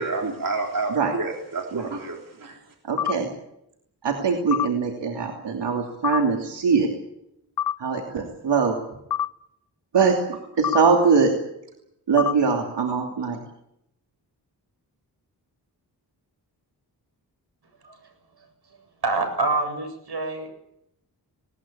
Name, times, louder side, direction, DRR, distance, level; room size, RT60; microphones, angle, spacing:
voice 1, 0.0-2.6, right 3 dB, 55° right, 1 dB, 3.5 m, -29 dB
voice 2, 1.7-2.0 2.8-3.3 4.0-6.9 7.8-8.8 9.9-11.4 12.1-13.4, right 5 dB, 90° right, 2 dB, 2.9 m, -22 dB
sound 1, 3.0-3.2 4.5-4.7 6.0-6.2 7.6-7.8 9.1-9.3 10.6-10.8 12.2-12.4, left 10 dB, 55° left, 0.8 m, -25 dB
voice 3, 17.8-20.5, right 3 dB, 70° right, 6 dB, 8.0 m, -28 dB
20.0 x 19.0 x 8.6 m, 0.79 s
cardioid pair, 70°, 41 cm